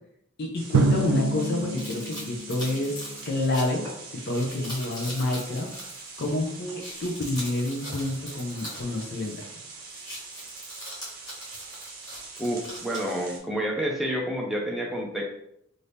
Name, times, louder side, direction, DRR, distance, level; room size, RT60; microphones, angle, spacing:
voice 1, 0.4-3.8 4.1-5.7 6.2-9.5, left 2 dB, 50° left, -1 dB, 0.6 m, -28 dB
sound 1, 0.5-13.4, right 4 dB, 45° right, 0.7 m, -43 dB
Drum, 0.7-3.4, right 3 dB, 80° right, 0.3 m, -27 dB
sound 2, 1.4-6.4 6.7-9.5 9.8-13.1, equal, 20° left, 1.2 m, -42 dB
voice 2, 12.4-15.2, equal, ahead, -2 dB, 0.4 m, -29 dB
2.8 x 2.6 x 3.4 m, 0.75 s
head